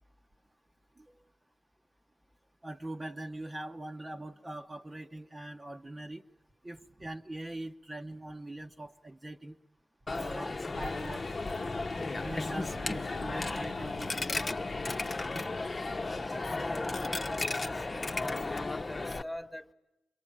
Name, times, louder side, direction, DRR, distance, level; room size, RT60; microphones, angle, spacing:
voice 1, 2.6-6.2 6.6-9.6 10.1-11.3 12.2-14.4, right 1 dB, 30° right, 1.1 m, -42 dB
Coin (dropping), 10.1-19.2, left 3 dB, 40° left, 1.0 m, -34 dB
Engine, 10.7-16.2, left 5 dB, 80° left, 1.0 m, -46 dB
voice 2, 16.3-19.7, left 1 dB, 5° left, 1.5 m, -45 dB
27.0 x 22.5 x 8.8 m
cardioid pair, 45°, 0 cm